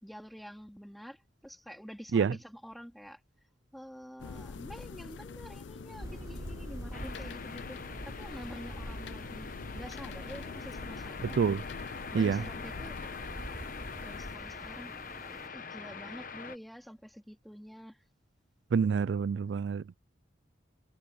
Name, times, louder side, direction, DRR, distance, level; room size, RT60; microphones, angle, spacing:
voice 1, 0.0-3.2 3.7-11.4 12.1-13.1 13.5-13.7 14.0-15.0 15.3-18.0, equal, ahead, 3.0 m, -48 dB
sound 1, 4.2-14.4, left 4 dB, 80° left, 0.5 m, -45 dB
sound 2, 6.0-15.5, right 1 dB, 15° right, 0.6 m, -46 dB
sound 3, 6.9-16.6, left 5 dB, 45° left, 1.0 m, -44 dB
voice 2, 11.3-11.6 12.1-12.4 18.7-20.0, right 6 dB, 75° right, 0.3 m, -27 dB
head